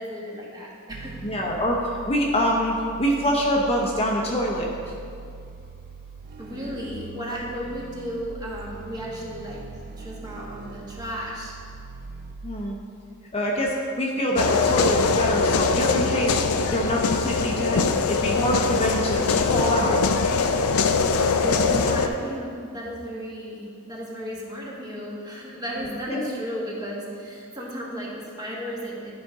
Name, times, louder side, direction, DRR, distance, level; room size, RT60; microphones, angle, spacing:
voice 1, 0.0-1.1 6.4-11.6 21.3-29.1, equal, 20° right, -4 dB, 1.4 m, -34 dB
sound 1, 0.9-12.8, right 4 dB, 45° right, 0.3 m, -42 dB
voice 2, 1.2-4.9 12.4-12.8 13.3-16.4 16.7-20.0 25.8-26.4, equal, 30° left, -1 dB, 0.7 m, -25 dB
sound 2, 14.4-22.1, left 4 dB, 85° left, 0.4 m, -22 dB
11.5 x 5.1 x 3.6 m, 2.4 s
head